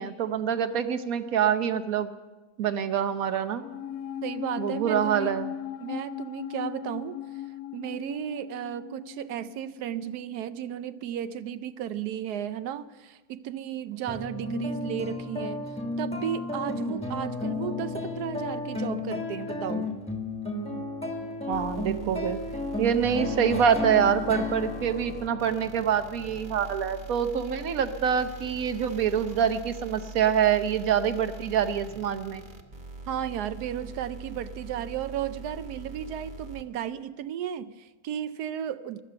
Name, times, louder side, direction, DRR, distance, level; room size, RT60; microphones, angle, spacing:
voice 1, 0.0-2.1 2.6-3.6 4.6-5.5 21.5-22.4 22.8-32.4, right 8 dB, 70° right, 10 dB, 1.2 m, -26 dB
sound 1, 3.6-10.2 10.4-10.5, left 11 dB, 75° left, 1.1 m, -38 dB
voice 2, 4.2-5.4 5.8-7.2 7.7-15.7 16.0-19.9 33.1-39.0, right 10 dB, 90° right, 13 dB, 1.2 m, -34 dB
sound 2, 14.1-26.8, left 2 dB, 5° left, 1.2 m, -33 dB
sound 3, 21.5-36.6, right 2 dB, 35° right, 1.1 m, -43 dB
15.5 x 12.0 x 6.8 m, 1.2 s
omnidirectional pair, 1.6 m